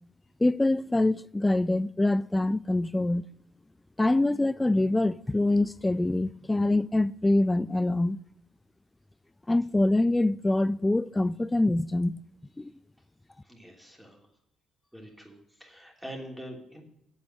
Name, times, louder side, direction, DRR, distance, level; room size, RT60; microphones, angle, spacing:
voice 1, 0.4-3.2 4.0-8.2 9.5-12.2 12.6-12.7, left 2 dB, 15° left, 0.4 m, -25 dB
voice 2, 13.4-14.3 14.9-16.8, equal, 5° right, 3.0 m, -44 dB
8.8 x 7.8 x 6.4 m
cardioid pair, 90°, 0 cm